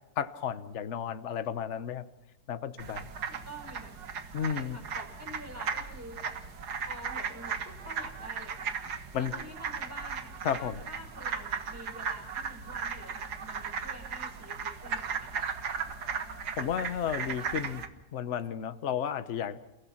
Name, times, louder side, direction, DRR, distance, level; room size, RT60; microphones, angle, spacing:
voice 1, 0.2-2.0 2.5-3.1 4.3-4.8 9.1-9.3 10.4-10.8 16.6-17.8 18.1-19.7, left 8 dB, 50° left, 12 dB, 1.2 m, -33 dB
sound 1, 2.8-17.9, right 6 dB, 85° right, 2.0 m, -37 dB
voice 2, 3.3-4.0 4.3-6.2 6.9-8.7 9.2-15.5 17.3-17.9, equal, 10° right, 2 dB, 5.4 m, -48 dB
29.0 x 16.5 x 5.9 m, 1.1 s
omnidirectional pair, 1.7 m